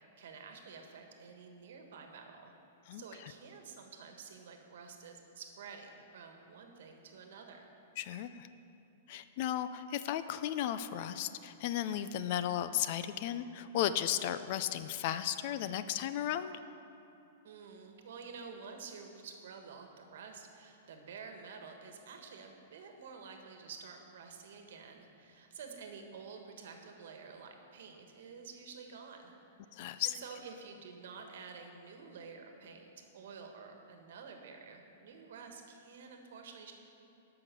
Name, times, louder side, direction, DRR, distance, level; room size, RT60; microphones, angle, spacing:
voice 1, 0.2-2.5 2.9-7.7 17.4-29.4 30.0-36.7, right 5 dB, 70° right, 4 dB, 1.3 m, -50 dB
voice 2, 2.9-3.3 8.0-8.5 9.1-16.5 29.7-30.2, left 11 dB, 45° left, 12 dB, 0.4 m, -35 dB
11.0 x 5.9 x 6.7 m, 2.7 s
hypercardioid pair, 155°, 0 cm